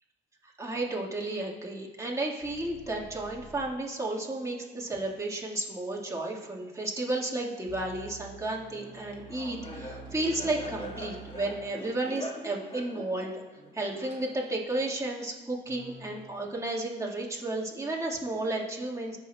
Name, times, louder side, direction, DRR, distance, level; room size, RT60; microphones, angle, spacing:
voice 1, 0.6-13.4 13.7-19.2, right 2 dB, 15° right, -3 dB, 1.6 m, -33 dB
sound 1, 2.4-3.8 7.7-11.8 15.6-16.3, right 4 dB, 45° right, 1.7 m, -48 dB
Laughter, 8.7-14.6, equal, 25° left, 1.6 m, -43 dB
15.0 x 5.7 x 2.2 m, 1.2 s
cardioid pair, 90°, 20 cm